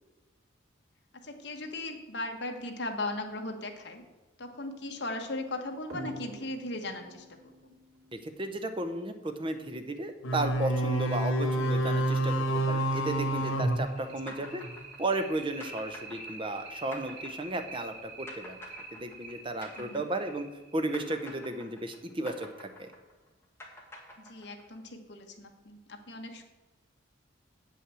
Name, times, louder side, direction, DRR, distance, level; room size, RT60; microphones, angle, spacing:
voice 1, 1.2-4.0 4.4-7.5 14.3-14.4 19.8-20.0 24.3-26.4, left 2 dB, 55° left, 4 dB, 1.3 m, -38 dB
sound 1, 5.9-9.1 10.5-10.6 11.0-11.1 11.5-11.6 12.0-22.1, right 2 dB, 90° right, 2.8 m, -47 dB
voice 2, 8.1-12.3 12.7-14.6 15.0-18.6 18.9-20.5 20.7-22.9, right 2 dB, 25° right, 7 dB, 0.8 m, -34 dB
sound 2, 10.2-14.7, right 1 dB, 90° left, 1.3 m, -29 dB
sound 3, 14.3-20.6 20.9-24.8, left 1 dB, 10° left, 1.5 m, -48 dB
8.3 x 5.6 x 7.6 m, 1.2 s
head